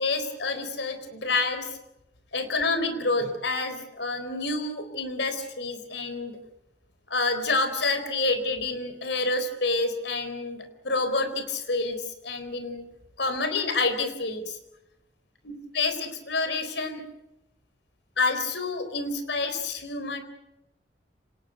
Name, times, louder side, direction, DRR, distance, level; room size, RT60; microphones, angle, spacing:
voice 1, 0.0-1.7 2.3-6.4 7.1-12.8 13.2-14.6 15.4-17.0 18.2-20.2, left 3 dB, 70° left, 9 dB, 4.1 m, -28 dB
26.5 x 19.0 x 9.1 m, 0.91 s
head